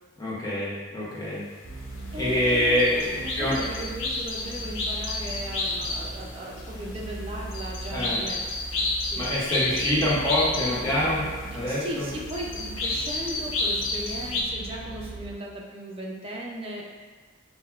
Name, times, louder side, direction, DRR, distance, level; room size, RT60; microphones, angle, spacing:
voice 1, 0.2-1.4 2.1-3.6 7.9-8.2 9.2-11.2 11.5-12.1, left 1 dB, 20° left, -8 dB, 0.6 m, -25 dB
sound 1, 1.6-15.3, right 2 dB, 40° left, 1.2 m, -39 dB
sound 2, 1.8-14.4, left 2 dB, 85° left, 0.4 m, -32 dB
voice 2, 2.1-8.4 8.7-9.3 11.4-16.9, right 1 dB, 30° right, -2 dB, 0.4 m, -37 dB
3.2 x 2.2 x 2.3 m, 1.4 s
head